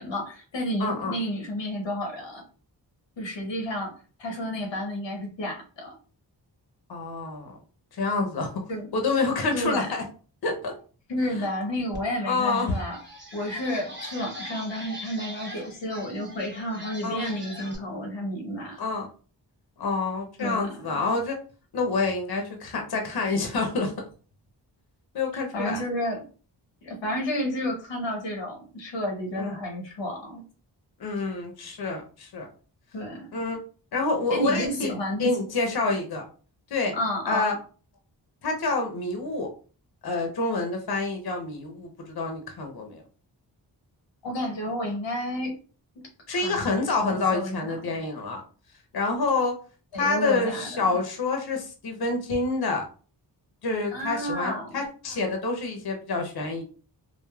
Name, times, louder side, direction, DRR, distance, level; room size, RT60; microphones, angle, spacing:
voice 1, 0.0-2.4 3.2-3.9 4.2-5.9 8.7-8.9 9.5-9.9 11.1-13.0 13.3-18.8 20.4-20.7 25.5-26.2 26.8-30.4 32.9-33.3 34.3-35.3 36.9-37.5 44.2-45.5 46.3-46.8 47.1-47.7 49.9-51.0 53.9-54.8, equal, 90° left, 1 dB, 0.9 m, -31 dB
voice 2, 0.8-1.2 6.9-7.6 7.9-8.5 8.9-10.0 10.4-10.7 11.3-11.5 12.2-12.8 17.0-17.3 18.8-19.1 19.8-21.3 21.7-23.9 25.1-25.8 29.4-29.6 31.0-32.5 33.3-33.6 33.9-34.9 35.2-36.2 36.7-36.9 37.3-37.6 38.4-39.5 40.0-43.0 46.3-48.4 48.9-49.5 49.9-52.8 53.6-56.6, left 3 dB, 60° left, 2 dB, 0.7 m, -27 dB
sound 1, 11.9-12.0 12.4-17.8, equal, 25° right, 1.0 m, -41 dB
3.2 x 2.0 x 2.2 m, 0.39 s
cardioid pair, 60°, 43 cm